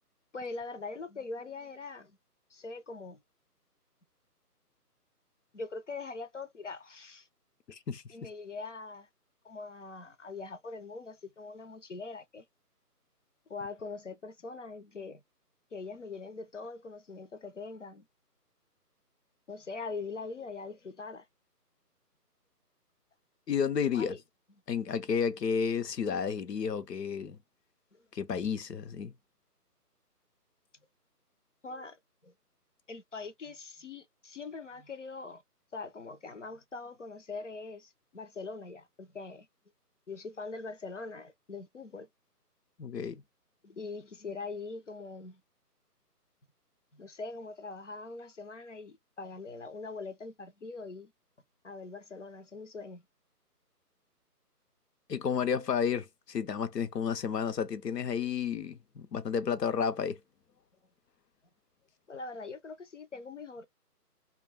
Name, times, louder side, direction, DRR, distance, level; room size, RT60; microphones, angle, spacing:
voice 1, 0.3-2.2 2.5-3.2 5.5-7.3 8.1-9.1 9.4-12.4 13.5-15.2 15.7-18.1 19.5-21.3 23.9-24.2 27.9-28.0 31.6-32.3 32.9-35.4 35.7-39.5 40.1-42.1 43.6-45.4 46.9-51.1 51.6-53.0 62.1-63.6, left 3 dB, 50° left, 0.5 m, -42 dB
voice 2, 7.7-8.0 23.5-24.1 24.7-27.4 28.1-29.1 42.8-43.2 55.1-60.2, left 7 dB, 90° left, 0.7 m, -31 dB
2.3 x 2.2 x 3.2 m
figure-of-eight pair, 165°, 48 cm